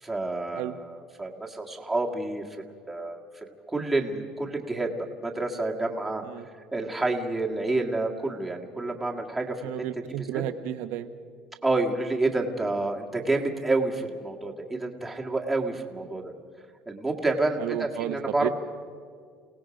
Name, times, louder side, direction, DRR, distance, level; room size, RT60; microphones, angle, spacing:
voice 1, 0.0-2.4 2.9-3.3 3.7-4.9 5.2-6.2 6.7-9.7 10.2-10.4 11.6-16.3 16.9-18.5, right 2 dB, 5° right, -1 dB, 1.9 m, -28 dB
voice 2, 9.6-11.2 16.1-16.2 17.6-18.5, right 12 dB, 70° right, 7 dB, 1.0 m, -32 dB
29.0 x 18.5 x 5.2 m, 2.1 s
cardioid pair, 150°, 2 cm